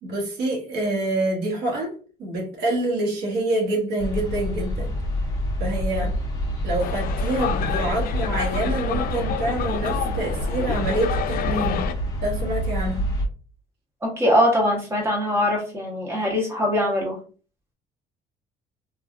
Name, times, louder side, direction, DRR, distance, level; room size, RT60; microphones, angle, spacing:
voice 1, 0.0-1.9 2.2-4.9 5.6-6.1 6.6-11.9 12.2-13.1, right 1 dB, 70° right, 1.2 m, -26 dB
sound 1, 4.0-13.3, equal, 20° left, 1.0 m, -27 dB
sound 2, 6.8-11.9, left 9 dB, 60° left, 0.4 m, -29 dB
voice 2, 14.0-17.2, equal, 15° right, 1.3 m, -22 dB
2.9 x 2.4 x 2.5 m
cardioid pair, 110°, 17 cm